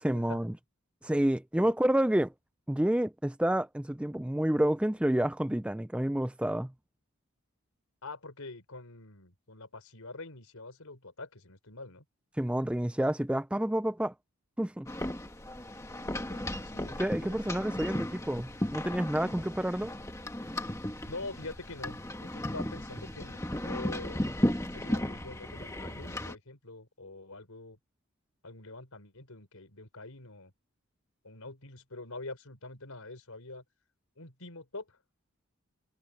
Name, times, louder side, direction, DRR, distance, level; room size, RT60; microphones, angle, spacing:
voice 1, 0.0-0.5 1.0-2.3 2.7-6.7 12.4-14.1 14.6-14.9 17.0-19.9, right 1 dB, 5° right, 0.4 m, -29 dB
voice 2, 8.0-12.0 16.1-17.6 21.0-24.3 24.7-27.8 28.4-30.5 31.2-33.6 34.2-35.0, left 2 dB, 80° left, 4.1 m, -45 dB
sound 1, 14.9-26.3, left 1 dB, 15° left, 1.5 m, -35 dB
head